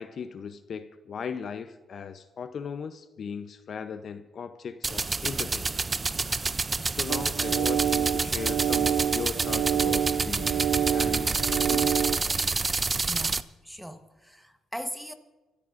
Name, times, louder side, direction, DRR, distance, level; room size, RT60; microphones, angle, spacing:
voice 1, 0.0-5.8 6.8-10.6 10.9-12.0, left 6 dB, 55° left, 0.7 m, -38 dB
sound 1, 4.8-13.4, right 3 dB, 25° right, 0.4 m, -28 dB
sound 2, 7.1-12.2, right 9 dB, 85° right, 0.7 m, -27 dB
voice 2, 13.1-15.1, equal, ahead, 1.2 m, -39 dB
28.0 x 13.5 x 2.6 m
cardioid pair, 90°, 0 cm